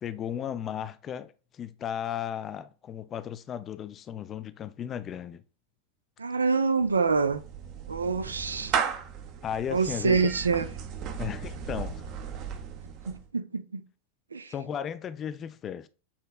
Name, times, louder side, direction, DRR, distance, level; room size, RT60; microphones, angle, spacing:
voice 1, 0.0-5.4 9.4-10.3 11.2-12.0 14.5-15.9, left 9 dB, 25° left, 0.4 m, -35 dB
voice 2, 6.2-7.4 7.9-8.7 9.7-10.7 13.1-13.8 14.3-14.5, right 5 dB, 75° right, 0.4 m, -26 dB
Clapping / Meow, 6.8-13.3, right 7 dB, 40° right, 0.7 m, -35 dB
7.1 x 3.1 x 2.4 m
figure-of-eight pair, 90°, 0 cm